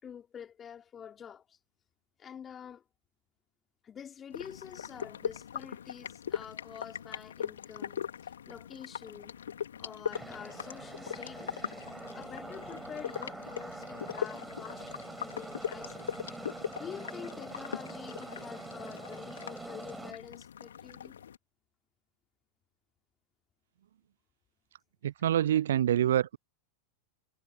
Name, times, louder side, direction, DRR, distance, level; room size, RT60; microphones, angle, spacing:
voice 1, 0.0-1.6 2.2-2.8 3.8-9.4 9.8-11.6 12.1-16.0 16.8-21.2, left 8 dB, 25° left, 4.2 m, -47 dB
sound 1, 4.3-21.4, left 8 dB, 65° left, 3.0 m, -40 dB
sound 2, 10.1-20.1, right 2 dB, 5° right, 7.3 m, -44 dB
voice 2, 25.0-26.4, right 11 dB, 60° right, 0.3 m, -26 dB
figure-of-eight pair, 90°, 0 cm